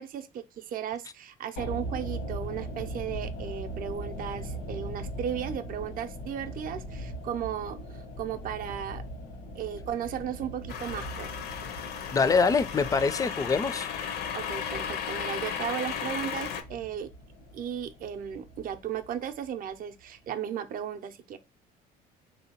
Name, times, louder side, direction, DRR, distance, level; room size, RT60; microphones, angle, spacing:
voice 1, 0.0-9.0 9.5-11.4 14.1-17.1 17.5-21.4, right 9 dB, 55° right, 0.5 m, -35 dB
sound 1, 1.6-19.8 20.0-20.1, equal, 90° left, 1.1 m, -40 dB
sound 2, 10.7-16.6, left 8 dB, 70° left, 0.6 m, -35 dB
voice 2, 12.1-14.0, left 5 dB, 20° left, 0.4 m, -25 dB
3.8 x 2.7 x 2.8 m
cardioid pair, 110°, 17 cm